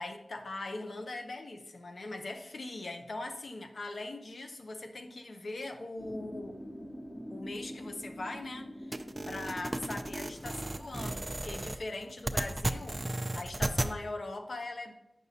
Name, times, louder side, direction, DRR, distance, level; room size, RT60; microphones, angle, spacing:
voice 1, 0.0-6.6 7.3-14.9, left 2 dB, 80° left, 5 dB, 0.7 m, -41 dB
sound 1, 6.0-11.0, equal, 45° left, 2.6 m, -45 dB
sound 2, 8.9-13.9, right 1 dB, 30° right, 0.5 m, -34 dB
8.3 x 6.1 x 2.8 m, 0.88 s
cardioid pair, 45°, 0 cm